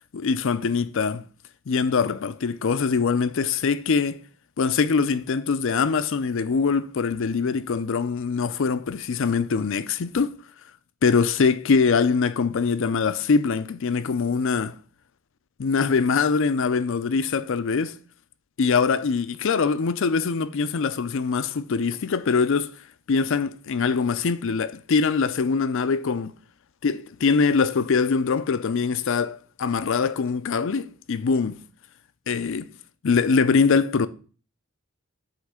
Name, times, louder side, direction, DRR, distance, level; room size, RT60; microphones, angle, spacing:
voice 1, 0.1-1.2 1.7-4.2 4.6-10.4 11.0-14.8 15.6-17.9 18.6-22.7 23.1-26.3 26.8-31.6 32.3-32.7 33.0-34.1, left 5 dB, 65° left, 0.5 m, -23 dB
8.1 x 3.2 x 6.2 m
head